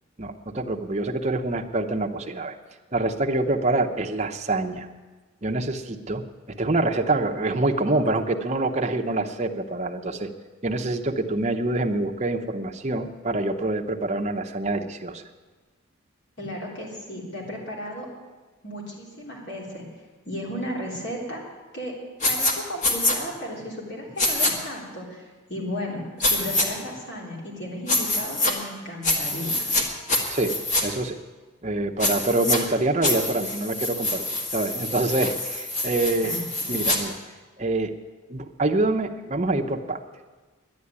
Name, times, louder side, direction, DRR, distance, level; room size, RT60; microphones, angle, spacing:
voice 1, 0.2-2.6 2.9-4.9 5.4-6.2 6.5-10.3 10.6-15.2 30.3-30.5 30.8-31.1 31.6-34.2 34.5-36.3 36.7-37.1 37.6-37.9 38.3-40.0, right 2 dB, 30° right, 3 dB, 0.8 m, -26 dB
voice 2, 16.4-18.1 18.6-19.8 20.3-21.4 21.7-21.9 22.2-29.7 36.2-36.9, equal, 55° left, -2 dB, 3.6 m, -34 dB
sound 1, 22.2-22.5 22.8-23.2 24.2-24.5 26.2-26.7 27.9-28.5 29.0-29.8 30.1-30.8 32.0-32.6 33.0-37.0, left 2 dB, 35° left, 1.6 m, -25 dB
10.5 x 10.0 x 9.7 m, 1.3 s
head